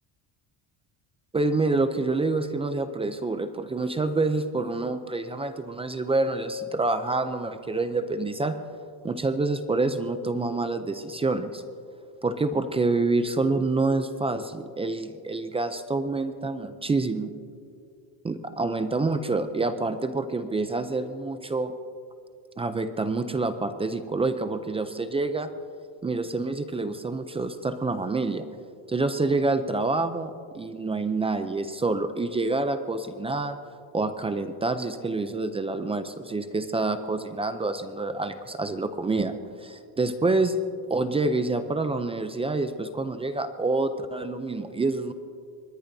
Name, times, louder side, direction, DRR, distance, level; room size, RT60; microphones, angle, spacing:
voice 1, 1.3-8.6 9.0-11.6 12.2-17.3 18.2-21.8 22.6-25.5 26.0-28.5 28.9-33.6 33.9-40.6 40.9-45.1, right 3 dB, 15° right, 9 dB, 0.4 m, -27 dB
24.0 x 20.5 x 2.7 m, 2.4 s
cardioid pair, 150°, 44 cm